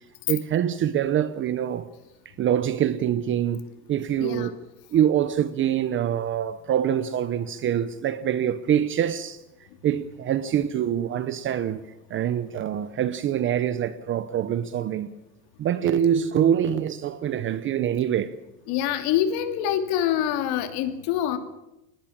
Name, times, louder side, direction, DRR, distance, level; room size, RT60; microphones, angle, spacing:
voice 1, 0.3-1.9 2.4-4.5 4.9-9.4 9.8-11.8 12.1-15.1 15.6-18.3, right 10 dB, 25° right, 0.8 m, -25 dB
voice 2, 4.2-4.5 18.7-21.4, left 10 dB, 45° left, 3.0 m, -25 dB
22.0 x 19.5 x 8.7 m
supercardioid pair, 150°, 50 cm